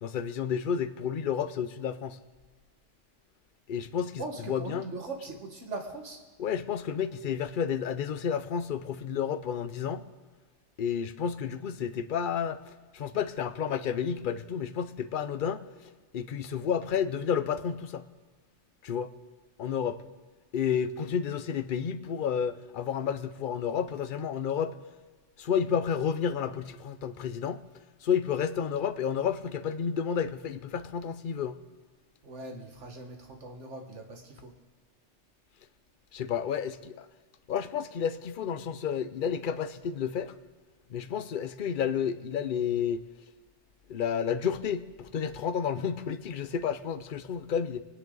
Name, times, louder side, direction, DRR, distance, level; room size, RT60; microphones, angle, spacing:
voice 1, 0.0-2.2 3.7-4.9 6.4-10.0 10.8-15.6 16.1-18.0 18.8-19.1 19.6-20.0 20.5-24.8 25.4-27.6 28.0-31.6 36.1-37.1 37.5-40.3 40.9-43.0 43.9-47.8, left 7 dB, 50° left, 0.8 m, -31 dB
voice 2, 4.2-6.2 32.2-34.5, right 3 dB, 75° right, 2.0 m, -40 dB
22.5 x 9.8 x 4.0 m
omnidirectional pair, 1.2 m